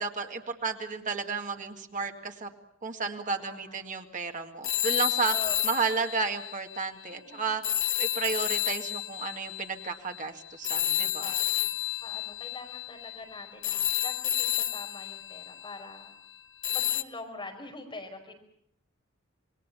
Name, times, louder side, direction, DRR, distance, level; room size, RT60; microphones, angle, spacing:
voice 1, 0.0-2.5 2.8-5.3 5.6-7.6 8.0-11.3, right 5 dB, 40° right, 5 dB, 2.0 m, -32 dB
voice 2, 3.3-3.8 5.3-5.6 7.1-7.5 11.2-11.7 12.0-16.1 16.7-18.3, left 2 dB, 25° left, 2 dB, 5.2 m, -44 dB
sound 1, 4.6-7.1 7.6-16.1 16.6-17.0, left 12 dB, 70° left, 1.3 m, -31 dB
27.0 x 21.5 x 7.0 m, 0.72 s
head